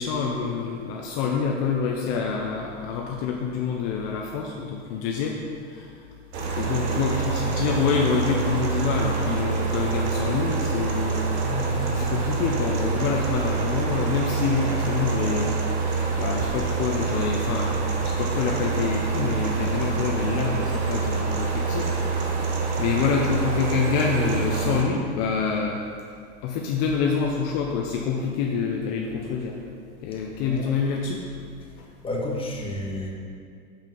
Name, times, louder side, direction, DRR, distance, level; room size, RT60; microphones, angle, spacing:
voice 1, 0.0-5.4 5.7-5.9 6.5-11.3 11.9-15.5 16.2-21.9 22.2-22.5 22.8-25.8 26.4-29.6 30.0-31.2, left 5 dB, 50° left, 0 dB, 0.9 m, -27 dB
sound 1, 6.3-24.8, right 4 dB, 55° right, 1.5 m, -26 dB
voice 2, 11.4-11.8 30.5-30.7 32.0-33.1, left 2 dB, 15° left, -3 dB, 1.6 m, -31 dB
7.3 x 5.2 x 5.5 m, 2.2 s
hypercardioid pair, 115°, 39 cm